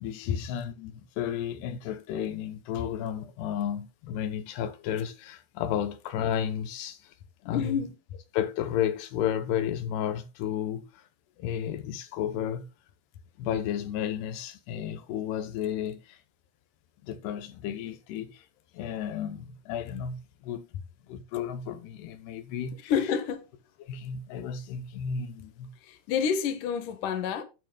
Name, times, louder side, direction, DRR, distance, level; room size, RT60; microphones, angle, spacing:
voice 1, 0.0-7.1 7.4-7.8 8.3-11.0 11.4-12.7 13.4-16.2 17.0-18.5 18.7-20.7 21.1-22.9 23.8-25.7, left 9 dB, 85° left, 3.0 m, -33 dB
voice 2, 7.5-7.9 22.9-23.5 25.8-27.4, left 7 dB, 60° left, 2.8 m, -28 dB
11.0 x 9.9 x 2.3 m
omnidirectional pair, 4.6 m